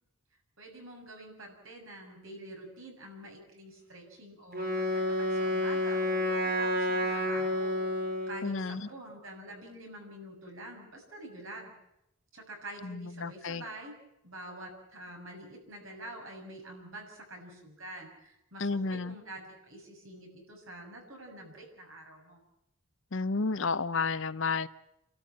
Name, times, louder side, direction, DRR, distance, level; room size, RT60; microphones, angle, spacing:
voice 1, 0.6-7.8 8.3-11.7 12.3-14.0 14.2-22.4, right 1 dB, 65° right, 1 dB, 7.0 m, -47 dB
Wind instrument woodwind instrument, 4.5-8.5, left 1 dB, 45° right, 3.4 m, -30 dB
voice 2, 8.4-8.8 12.8-13.6 18.6-19.1 23.1-24.7, left 4 dB, 60° left, 14 dB, 0.8 m, -31 dB
28.5 x 13.5 x 8.8 m, 0.84 s
head